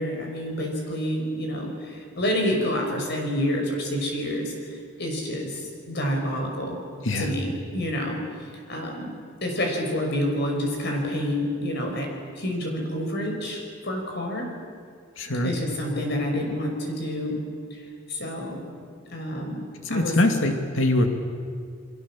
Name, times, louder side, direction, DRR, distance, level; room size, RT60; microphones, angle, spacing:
voice 1, 0.0-4.5 5.0-5.6 5.9-6.8 7.2-8.2 8.7-9.1 9.4-12.1 12.4-14.5 15.4-17.4 17.7-17.8 18.1-18.6 19.1-20.2, equal, 60° left, 2 dB, 5.7 m, -28 dB
voice 2, 15.2-15.5 19.9-21.1, left 1 dB, 80° left, 5 dB, 2.4 m, -23 dB
29.5 x 22.5 x 7.5 m, 2.1 s
head